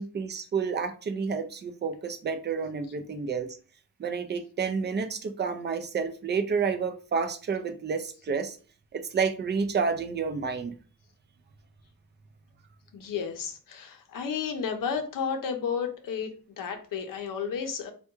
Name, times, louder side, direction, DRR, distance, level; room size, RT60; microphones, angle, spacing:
voice 1, 0.0-3.6 4.0-8.6 8.9-10.7, right 5 dB, 30° right, 8 dB, 0.4 m, -30 dB
voice 2, 12.9-16.3 16.6-17.9, left 6 dB, 65° left, 5 dB, 0.6 m, -32 dB
3.4 x 2.2 x 2.9 m, 0.38 s
wide cardioid pair, 155°, 36 cm